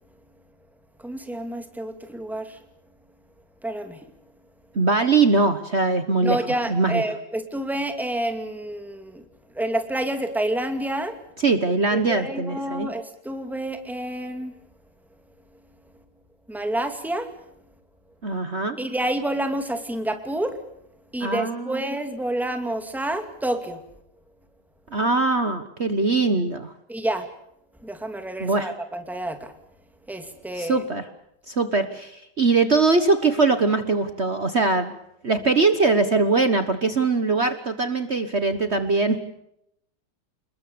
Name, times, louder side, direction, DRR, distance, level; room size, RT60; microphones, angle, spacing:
voice 1, 1.0-2.6 3.6-4.0 6.2-9.2 9.5-11.2 11.9-14.5 16.5-17.3 18.8-20.6 21.1-23.8 26.9-27.3 27.8-29.5 30.1-30.8, right 1 dB, ahead, 6 dB, 2.4 m, -28 dB
voice 2, 4.7-6.4 6.7-7.0 11.4-12.9 18.2-18.8 21.2-21.8 24.9-26.7 28.4-28.7 30.6-31.1 31.5-34.9 35.2-39.2, right 3 dB, 40° right, 9 dB, 1.4 m, -22 dB
28.5 x 21.0 x 6.9 m, 0.79 s
omnidirectional pair, 2.0 m